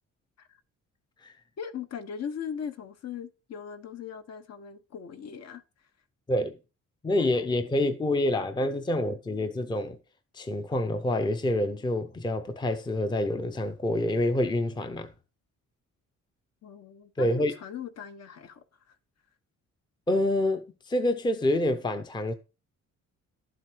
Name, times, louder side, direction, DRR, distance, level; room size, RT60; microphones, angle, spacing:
voice 1, 1.6-5.6 16.6-18.9, left 7 dB, 55° left, 1.3 m, -39 dB
voice 2, 7.0-10.0 10.3-15.1 17.2-17.5 20.1-22.3, left 1 dB, 15° left, 0.7 m, -27 dB
12.0 x 7.8 x 4.6 m
wide cardioid pair, 175°, 31 cm